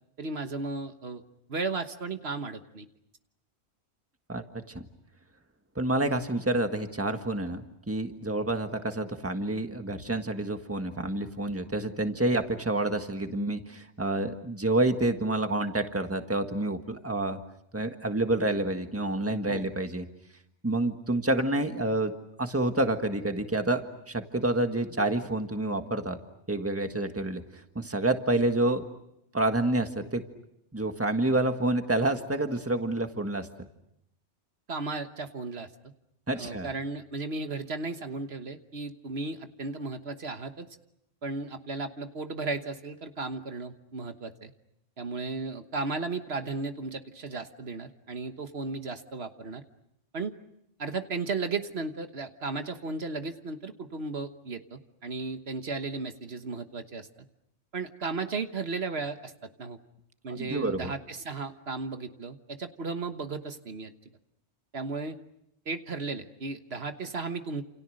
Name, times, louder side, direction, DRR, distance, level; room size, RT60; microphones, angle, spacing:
voice 1, 0.2-1.2 1.5-2.9 19.5-19.7 34.7-35.7 36.3-40.7 41.2-44.5 45.0-49.6 50.1-50.3 50.8-57.1 57.7-59.3 59.6-59.8 60.2-63.9 64.7-65.2 65.7-67.6, right 3 dB, 65° right, 8 dB, 1.5 m, -35 dB
voice 2, 4.3-4.8 5.7-17.4 17.7-20.0 20.6-22.1 22.4-23.8 24.1-26.2 26.5-28.8 29.3-30.2 30.7-33.5 36.3-36.7 60.3-60.9, right 2 dB, 10° right, 6 dB, 1.6 m, -28 dB
29.0 x 28.5 x 6.5 m, 0.80 s
omnidirectional pair, 1.1 m